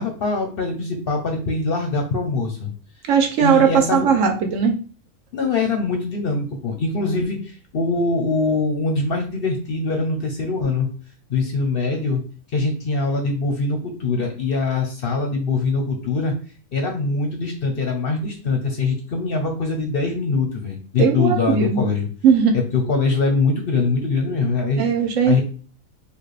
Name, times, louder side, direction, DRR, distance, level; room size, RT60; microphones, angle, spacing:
voice 1, 0.0-2.7 3.4-4.1 5.3-10.9 11.3-12.2 12.5-16.3 16.7-22.1 22.5-24.8 25.2-25.4, left 3 dB, 55° left, 3 dB, 0.7 m, -23 dB
voice 2, 3.1-4.7 21.0-21.8 22.2-22.6 24.8-25.4, right 6 dB, 70° right, 4 dB, 1.1 m, -18 dB
4.2 x 2.5 x 3.2 m, 0.39 s
omnidirectional pair, 1.4 m